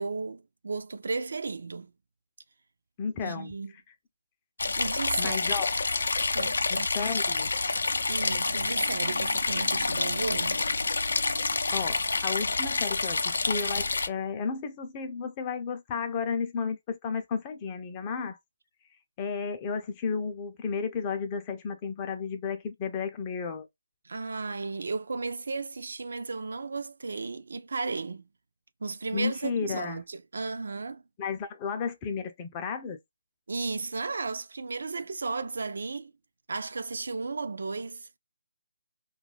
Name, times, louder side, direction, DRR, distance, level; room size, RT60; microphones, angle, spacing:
voice 1, 0.0-1.9 3.2-3.7 4.8-5.5 6.3-6.9 8.1-10.7 24.0-28.3 28.8-31.0 33.5-36.1 36.5-38.1, right 4 dB, 70° right, 0.4 m, -34 dB
voice 2, 3.0-3.5 5.2-5.7 6.7-7.5 11.7-18.4 19.2-23.7 29.1-30.0 31.2-33.0, left 5 dB, 20° left, 0.4 m, -33 dB
sound 1, 4.6-14.1, left 3 dB, 80° left, 0.4 m, -28 dB
2.3 x 2.2 x 3.2 m
hypercardioid pair, 170°, 0 cm